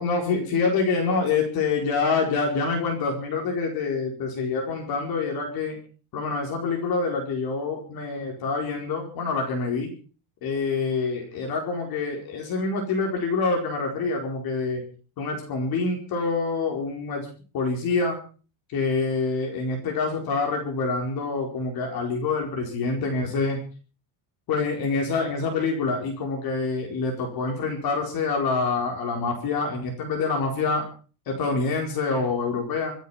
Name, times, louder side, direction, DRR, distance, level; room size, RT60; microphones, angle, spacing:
voice 1, 0.0-5.8 6.1-9.9 10.4-14.8 15.2-17.3 17.5-18.2 18.7-23.6 24.5-30.9 31.3-32.9, left 4 dB, 45° left, 2 dB, 4.7 m, -26 dB
26.5 x 9.3 x 5.8 m, 0.39 s
cardioid pair, 160°, 50 cm